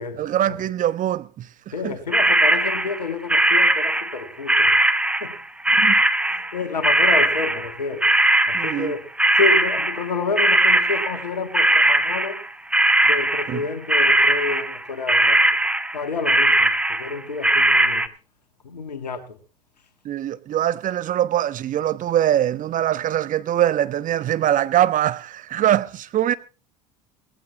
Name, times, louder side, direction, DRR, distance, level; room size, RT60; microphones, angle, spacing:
voice 1, 0.0-2.0 5.7-6.0 8.5-8.9 13.5-13.6 20.0-26.3, right 11 dB, 40° right, 1.1 m, -23 dB
voice 2, 1.7-4.8 5.2-5.4 6.2-8.0 8.5-9.1 9.4-12.4 13.0-15.4 15.9-16.7 17.0-18.1 18.6-19.2, left 4 dB, 85° left, 1.7 m, -29 dB
sound 1, 2.1-4.2 4.5-11.3 11.5-14.8 15.1-18.1, right 1 dB, 5° right, 1.3 m, -19 dB
18.5 x 15.5 x 3.0 m
hypercardioid pair, 70°, 20 cm